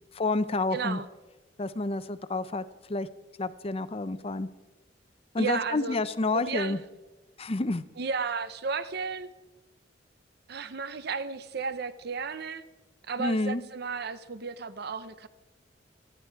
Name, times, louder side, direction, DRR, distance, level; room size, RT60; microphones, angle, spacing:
voice 1, 0.1-1.0 1.6-2.6 2.9-3.1 3.4-4.5 5.3-6.8 7.4-7.8 13.2-13.6, left 2 dB, 30° left, 13 dB, 0.6 m, -29 dB
voice 2, 0.7-1.1 5.4-6.0 6.3-6.8 8.0-9.3 10.5-12.6 13.1-15.3, right 5 dB, 60° right, 13 dB, 0.7 m, -33 dB
27.0 x 9.9 x 4.6 m, 1.1 s
head